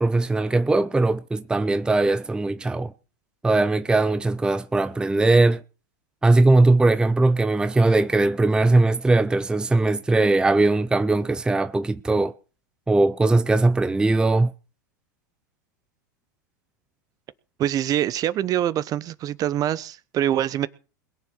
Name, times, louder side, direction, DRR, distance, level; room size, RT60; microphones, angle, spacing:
voice 1, 0.0-2.9 3.4-5.6 6.2-12.3 12.9-14.5, right 2 dB, 10° right, 0.6 m, -20 dB
voice 2, 17.6-20.7, right 11 dB, 35° right, 0.9 m, -24 dB
21.5 x 7.3 x 6.4 m
hypercardioid pair, 95°, 10 cm